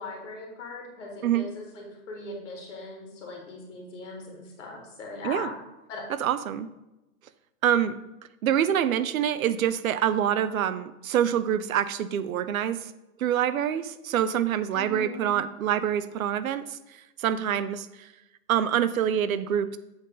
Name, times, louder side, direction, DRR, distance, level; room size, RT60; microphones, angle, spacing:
voice 1, 0.0-5.6 5.9-6.0 14.7-15.4, left 2 dB, 50° left, 0 dB, 2.0 m, -39 dB
voice 2, 6.2-6.7 7.6-8.0 8.4-12.9 13.2-16.8 17.2-17.9 18.5-19.8, right 9 dB, 65° right, 14 dB, 0.6 m, -26 dB
7.9 x 3.9 x 5.2 m, 0.97 s
hypercardioid pair, 175°, 47 cm